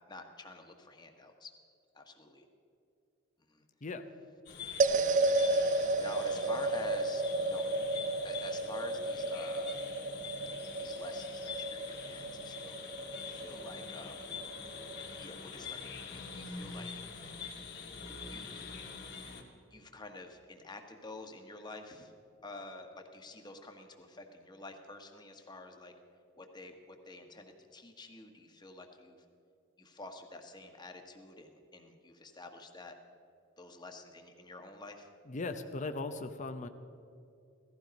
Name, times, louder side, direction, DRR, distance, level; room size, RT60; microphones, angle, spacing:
voice 1, 0.1-1.5 1.9-2.4 3.5-3.7 6.0-7.7 8.2-9.8 10.8-14.3 15.2-16.9 18.3-18.7 19.7-22.1 22.4-25.9 26.4-29.2 29.8-33.0 33.6-35.1, left 2 dB, 20° left, 4 dB, 1.4 m, -49 dB
voice 2, 3.8-4.2 35.3-36.7, left 3 dB, 40° left, 8 dB, 0.7 m, -38 dB
sound 1, 4.5-19.4, left 5 dB, 55° left, 2.0 m, -45 dB
sound 2, 4.8-15.2, right 2 dB, 40° right, 0.4 m, -33 dB
17.0 x 14.5 x 5.3 m, 2.6 s
head